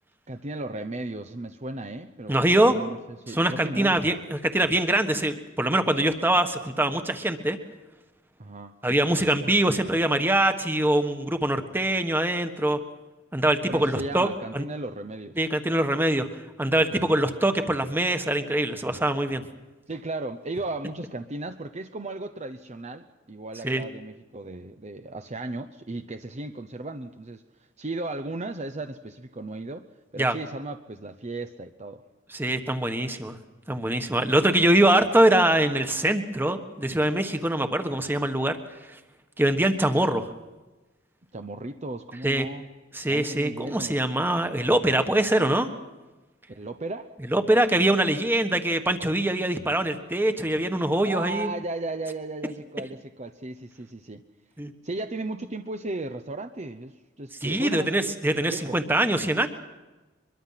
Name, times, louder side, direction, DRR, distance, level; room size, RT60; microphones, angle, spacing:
voice 1, 0.3-2.4 2.6-4.0 8.4-8.7 13.7-15.4 16.9-17.1 19.9-27.4 27.8-29.9 30.1-32.0 41.3-42.7 43.1-44.0 46.5-47.2 51.0-54.2 54.8-58.8, right 2 dB, 35° right, 7 dB, 0.8 m, -35 dB
voice 2, 2.3-2.7 3.3-7.6 8.8-12.8 13.3-14.6 15.4-16.3 16.6-19.4 23.6-23.8 30.2-30.3 32.3-33.4 33.7-38.6 39.4-40.3 42.2-42.5 42.9-45.7 47.3-51.5 54.6-54.7 57.4-59.5, right 1 dB, 10° right, 7 dB, 1.4 m, -23 dB
23.5 x 23.0 x 5.8 m, 1.1 s
head